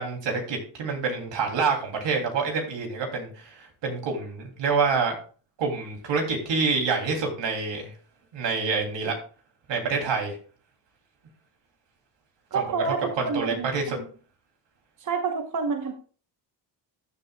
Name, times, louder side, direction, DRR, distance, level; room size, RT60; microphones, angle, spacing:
voice 1, 0.0-5.2 5.6-7.9 8.3-9.2 9.7-10.4 12.5-12.6 13.2-14.0, right 4 dB, 80° right, 2 dB, 3.1 m, -27 dB
voice 2, 12.5-14.0 15.0-15.9, right 5 dB, 45° right, 5 dB, 1.1 m, -29 dB
13.5 x 8.3 x 2.3 m, 0.40 s
cardioid pair, 105°, 43 cm